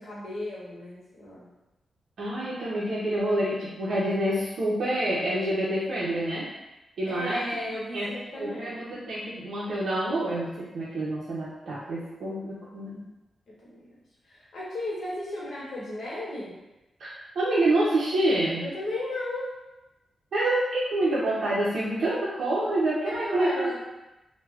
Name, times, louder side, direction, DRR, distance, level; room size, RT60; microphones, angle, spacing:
voice 1, 0.0-1.5 7.1-8.8 13.5-13.8 14.3-16.5 18.6-19.5 23.0-23.8, left 1 dB, 60° left, -7 dB, 0.7 m, -35 dB
voice 2, 2.2-6.5 7.0-7.4 7.9-13.0 17.0-18.7 20.3-23.8, right 1 dB, 70° right, -9 dB, 0.5 m, -27 dB
2.3 x 2.1 x 3.3 m, 1.0 s
wide cardioid pair, 155°, 0 cm